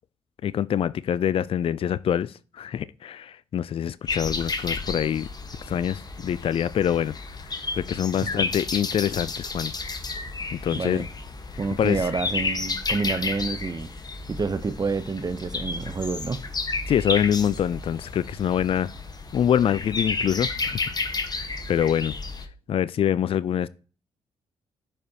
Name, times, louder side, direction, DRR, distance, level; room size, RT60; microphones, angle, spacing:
voice 1, 0.4-5.3 5.7-9.7 10.5-11.1 11.8-12.0 16.9-18.9 19.3-21.4 21.7-22.2 22.7-23.7, left 9 dB, 50° left, 0.4 m, -25 dB
sound 1, 4.1-22.5, left 3 dB, 35° left, 1.2 m, -32 dB
voice 2, 10.7-11.0 11.6-13.9 14.3-16.4, right 4 dB, 35° right, 0.7 m, -28 dB
11.5 x 5.1 x 2.8 m
supercardioid pair, 50°, 12 cm